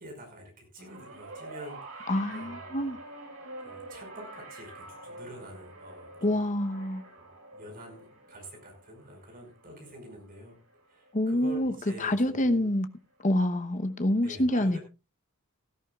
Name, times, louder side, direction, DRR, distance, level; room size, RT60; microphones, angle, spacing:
voice 1, 0.0-2.9 3.6-6.4 6.9-10.6 10.9-12.6 14.2-14.8, right 1 dB, 45° right, 5.5 m, -47 dB
sound 1, 0.8-11.2 12.3-12.4, right 2 dB, 75° right, 4.8 m, -47 dB
voice 2, 2.1-3.0 6.2-7.0 11.1-11.7 12.0-12.9 13.2-14.8, left 1 dB, 35° left, 1.0 m, -26 dB
17.0 x 13.5 x 2.4 m
head